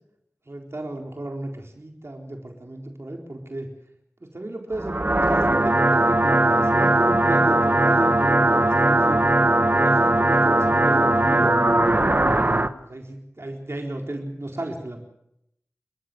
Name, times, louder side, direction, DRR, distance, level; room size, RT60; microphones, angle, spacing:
voice 1, 0.5-3.7 4.2-9.2 9.6-11.5 12.3-15.0, right 1 dB, 60° right, 2 dB, 4.1 m, -33 dB
sound 1, 4.7-12.7, right 2 dB, 40° right, 1.2 m, -19 dB
29.0 x 14.5 x 7.9 m, 0.77 s
wide cardioid pair, 45°, 5 cm